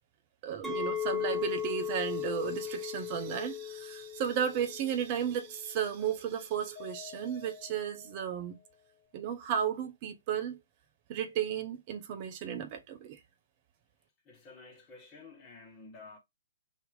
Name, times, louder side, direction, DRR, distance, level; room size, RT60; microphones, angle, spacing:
voice 1, 0.4-8.6 9.1-10.6 11.1-13.2, right 9 dB, 35° right, 0.8 m, -34 dB
Chink clink, 0.6-5.8, left 9 dB, 5° right, 0.8 m, -37 dB
Mallet percussion, 6.8-9.0, left 9 dB, 45° left, 0.9 m, -51 dB
voice 2, 14.2-16.2, left 3 dB, 20° left, 1.8 m, -51 dB
3.7 x 2.8 x 3.6 m
figure-of-eight pair, 120°, 0 cm